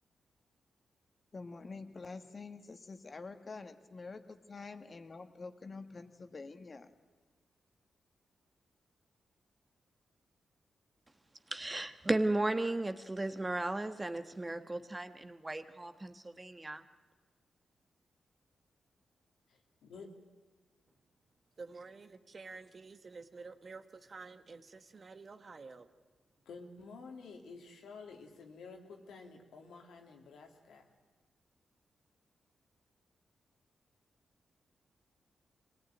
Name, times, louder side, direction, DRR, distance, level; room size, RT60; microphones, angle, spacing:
voice 1, 1.3-6.9, left 4 dB, 45° left, 7 dB, 1.7 m, -47 dB
voice 2, 11.5-16.8, right 2 dB, 20° right, 9 dB, 1.3 m, -35 dB
voice 3, 19.5-20.1 26.5-30.9, left 4 dB, 85° left, 2 dB, 2.5 m, -51 dB
voice 4, 21.6-25.9, right 4 dB, 45° right, 9 dB, 1.3 m, -50 dB
23.0 x 17.5 x 9.2 m, 1.4 s
cardioid pair, 60°, 0 cm